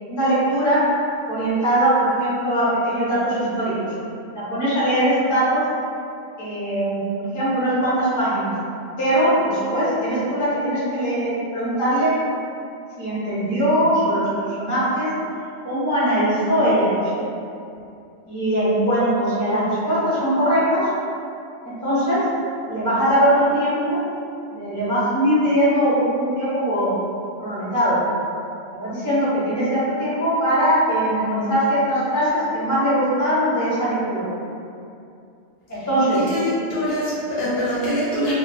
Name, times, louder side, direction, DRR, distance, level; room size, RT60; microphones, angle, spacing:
voice 1, 0.1-0.8 1.3-3.9 4.3-5.6 6.4-8.5 9.0-12.1 13.0-15.1 15.6-17.1 18.3-20.9 21.6-22.2 22.7-24.0 24.5-27.0 27.4-28.0 28.7-34.3 35.7-36.2, right 1 dB, 20° left, -10 dB, 0.6 m, -21 dB
voice 2, 36.3-38.3, equal, 65° left, -9 dB, 0.7 m, -24 dB
2.1 x 2.1 x 3.2 m, 2.6 s
omnidirectional pair, 1.2 m